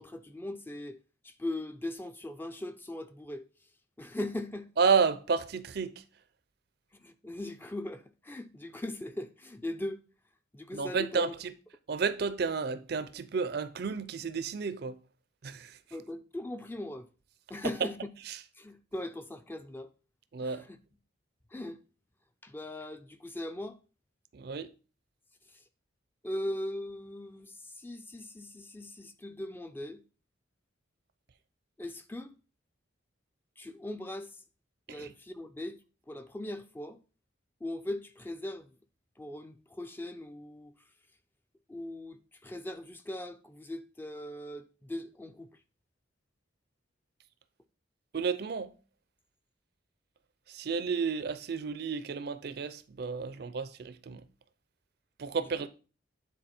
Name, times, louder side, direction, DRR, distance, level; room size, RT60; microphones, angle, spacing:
voice 1, 0.0-3.7 4.0-4.7 6.9-10.0 10.5-11.4 15.9-17.1 17.5-18.0 18.5-19.9 20.4-20.8 21.5-21.8 22.4-23.8 25.5-25.6 26.2-30.0 31.8-32.4 33.6-34.4 34.9-37.0 37.6-38.7 39.2-40.9 41.7-45.6, left 1 dB, 10° left, 0.4 m, -40 dB
voice 2, 4.8-6.0 10.7-11.5 11.9-14.9 15.4-15.8 20.3-20.6 24.3-24.7 34.9-35.1 48.1-48.7 50.5-54.2 55.2-55.7, right 5 dB, 50° right, 0.4 m, -31 dB
9.2 x 3.9 x 4.3 m
head